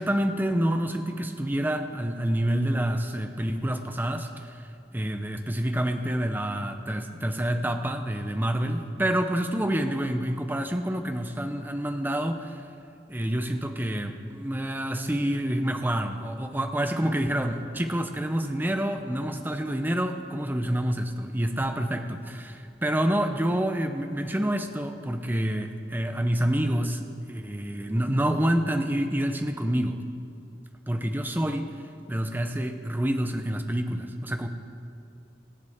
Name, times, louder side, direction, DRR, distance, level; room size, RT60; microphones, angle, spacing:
voice 1, 0.0-12.6 13.1-30.0 30.9-31.7 32.1-34.5, right 1 dB, 10° right, 7 dB, 0.6 m, -28 dB
23.5 x 7.9 x 3.6 m, 2.5 s
head